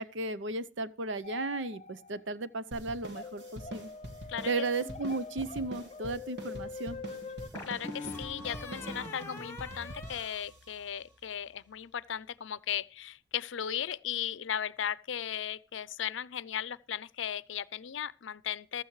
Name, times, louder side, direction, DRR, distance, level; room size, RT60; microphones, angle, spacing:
voice 1, 0.0-3.9 4.5-7.0, right 3 dB, 80° right, 0.7 m, -35 dB
sound 1, 1.2-2.2 3.1-7.5, left 4 dB, 35° left, 0.6 m, -44 dB
sound 2, 2.7-11.5, right 1 dB, 65° right, 2.4 m, -45 dB
sound 3, 4.8-5.6 7.5-11.1, left 2 dB, 15° left, 1.3 m, -44 dB
voice 2, 7.7-18.8, left 9 dB, 85° left, 0.5 m, -36 dB
15.0 x 12.5 x 3.2 m
head